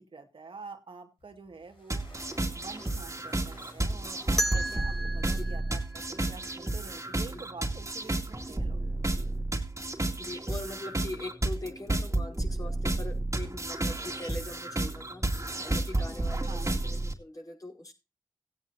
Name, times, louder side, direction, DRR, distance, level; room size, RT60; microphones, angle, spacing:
voice 1, 0.0-2.1 2.5-8.8 16.4-16.7, right 4 dB, 80° right, 3 dB, 2.0 m, -47 dB
sound 1, 1.2-6.2, left 2 dB, 85° left, 6.0 m, -57 dB
sound 2, 1.9-17.1, right 2 dB, 35° right, 2.3 m, -31 dB
sound 3, 4.4-7.2, right 1 dB, 5° left, 1.5 m, -35 dB
voice 2, 10.2-15.3 15.6-17.9, left 1 dB, 40° left, 0 dB, 4.9 m, -42 dB
17.5 x 9.3 x 2.7 m, 0.27 s
cardioid pair, 45°, 9 cm